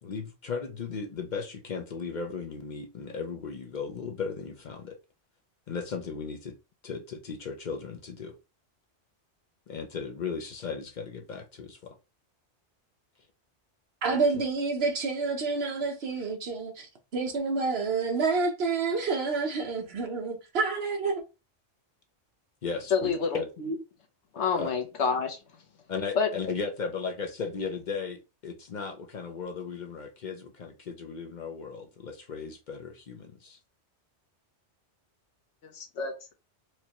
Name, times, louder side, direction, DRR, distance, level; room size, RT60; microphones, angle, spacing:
voice 1, 0.0-5.0 5.7-6.6 6.8-8.4 9.7-12.0 22.6-23.5 24.5-24.7 25.9-33.6, left 5 dB, 50° left, 0.6 m, -36 dB
voice 2, 14.0-21.2, right 4 dB, 65° right, 1.0 m, -28 dB
voice 3, 22.9-23.7 24.3-25.4 26.1-26.3 35.6-36.3, left 5 dB, 85° left, 1.2 m, -28 dB
4.5 x 2.2 x 2.9 m
omnidirectional pair, 1.2 m